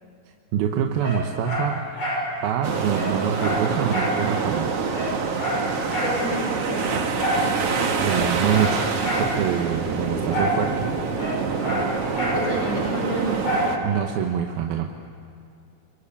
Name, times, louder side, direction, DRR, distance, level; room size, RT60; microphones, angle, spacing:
voice 1, 0.5-1.8 2.4-4.7 8.0-8.9 9.2-10.9 13.8-14.9, right 8 dB, 90° right, 4 dB, 3.0 m, -25 dB
Dog, 1.0-2.3 2.6-2.7 2.9-4.2 4.5-4.6 4.9-6.2 7.2-7.5 8.0-9.3 10.3-10.6 10.9-12.4 13.4-13.7 14.2-14.3, equal, 50° left, 8.3 m, -27 dB
sound 1, 2.6-13.8, right 5 dB, 50° right, 2.4 m, -26 dB
voice 2, 6.0-7.1 12.3-13.9, right 1 dB, 20° left, -1 dB, 4.8 m, -30 dB
27.5 x 23.5 x 8.6 m, 2.6 s
omnidirectional pair, 4.2 m